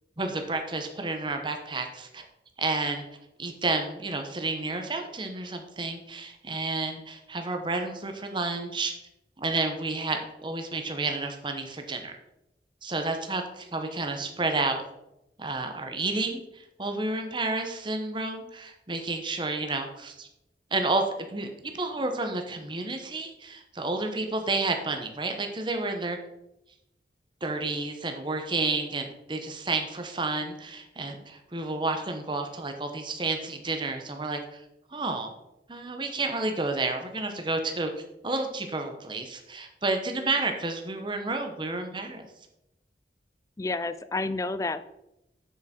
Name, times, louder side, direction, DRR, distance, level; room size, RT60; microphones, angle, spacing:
voice 1, 0.2-2.3 2.6-3.1 3.4-8.9 9.4-12.2 12.8-14.8 15.4-20.3 20.7-26.2 27.4-34.6 34.9-35.3 35.7-37.9 38.2-42.3, right 3 dB, 25° right, 5 dB, 1.0 m, -30 dB
voice 2, 43.6-44.9, left 3 dB, 20° left, 13 dB, 0.3 m, -30 dB
7.7 x 7.1 x 4.3 m, 0.87 s
head